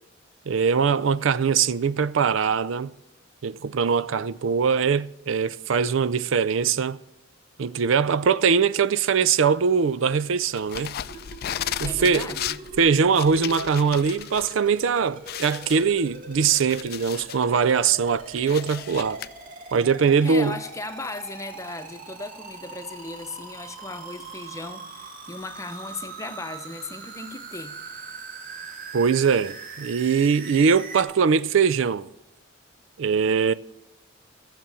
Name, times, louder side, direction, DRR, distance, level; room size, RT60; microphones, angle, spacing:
voice 1, 0.5-2.9 3.4-7.0 7.6-11.0 11.8-12.3 12.8-19.2 19.7-20.6 28.9-32.1 33.0-33.5, right 6 dB, 70° right, 0.4 m, -22 dB
sound 1, 10.6-14.5 14.9-15.0 15.3-17.4 17.9-19.3, left 11 dB, 50° left, 0.4 m, -35 dB
sound 2, 11.0-31.0, right 4 dB, 45° right, 2.2 m, -42 dB
voice 2, 11.8-12.6 20.2-27.8, left 2 dB, 15° left, 0.9 m, -37 dB
15.5 x 7.5 x 8.3 m
head